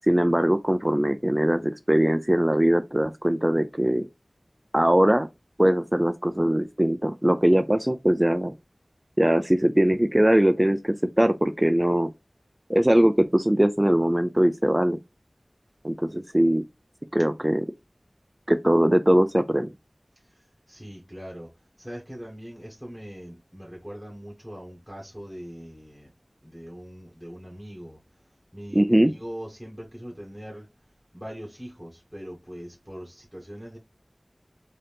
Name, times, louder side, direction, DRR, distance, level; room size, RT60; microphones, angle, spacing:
voice 1, 0.1-4.1 4.7-5.3 5.6-8.5 9.2-12.1 12.7-15.0 15.8-16.6 17.1-17.6 18.5-19.7 28.7-29.1, right 1 dB, 20° right, 0.3 m, -21 dB
voice 2, 20.3-21.5 21.8-26.1 26.4-28.0 28.5-30.7 31.1-33.8, equal, ahead, 1.4 m, -41 dB
3.9 x 2.7 x 3.3 m
wide cardioid pair, 45°, 0 cm